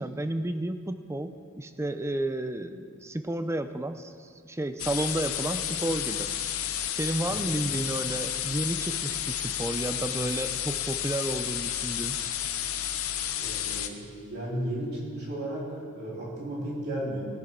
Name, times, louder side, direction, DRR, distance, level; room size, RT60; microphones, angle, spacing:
voice 1, 0.0-6.3 6.9-12.2, right 1 dB, 15° right, 9 dB, 0.5 m, -32 dB
sound 1, 4.8-13.9, left 10 dB, 85° left, 0.7 m, -31 dB
voice 2, 13.3-17.2, right 1 dB, 50° right, -6 dB, 4.0 m, -34 dB
19.0 x 10.5 x 3.8 m, 2.1 s
head